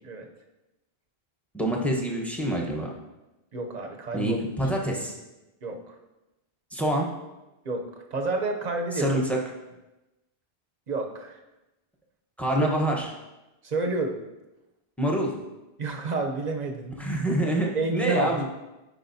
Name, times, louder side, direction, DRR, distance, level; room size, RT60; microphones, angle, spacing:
voice 1, 1.5-2.9 4.1-5.1 6.7-7.1 9.0-9.4 12.4-13.1 15.0-15.3 17.0-18.4, right 1 dB, ahead, -1 dB, 0.8 m, -26 dB
voice 2, 3.5-4.4 5.6-5.9 7.6-7.8 8.1-9.1 10.9-11.4 12.6-12.7 13.6-14.2 15.8-17.0 17.7-18.4, right 3 dB, 45° right, 3 dB, 0.7 m, -29 dB
9.9 x 4.8 x 2.7 m, 1.0 s
omnidirectional pair, 1.1 m